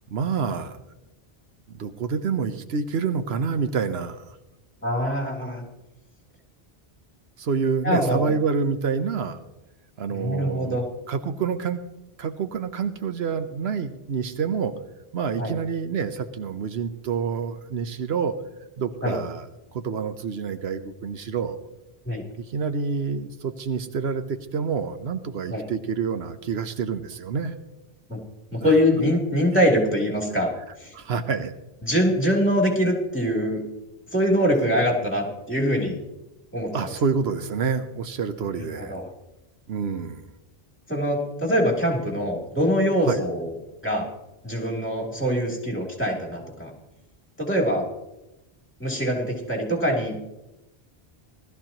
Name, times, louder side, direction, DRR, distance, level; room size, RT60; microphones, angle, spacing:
voice 1, 0.1-0.8 1.7-4.3 7.4-9.4 10.0-11.8 12.2-14.7 15.1-18.3 18.8-19.5 19.7-21.6 22.4-27.5 28.6-28.7 30.9-31.5 36.7-39.0 39.7-40.2 43.1-43.2, right 6 dB, 85° right, 9 dB, 1.1 m, -27 dB
voice 2, 4.8-5.6 7.8-8.3 10.1-10.8 15.4-15.5 19.0-19.2 22.0-22.2 25.5-25.6 28.1-28.2 28.5-30.5 30.8-30.9 31.8-33.6 34.1-36.0 36.5-36.8 38.8-39.0 40.9-43.5 43.8-44.1 44.4-46.7 47.4-47.9 48.8-50.1, equal, 10° left, -1 dB, 3.2 m, -23 dB
18.5 x 13.0 x 3.0 m, 0.96 s
omnidirectional pair, 1.0 m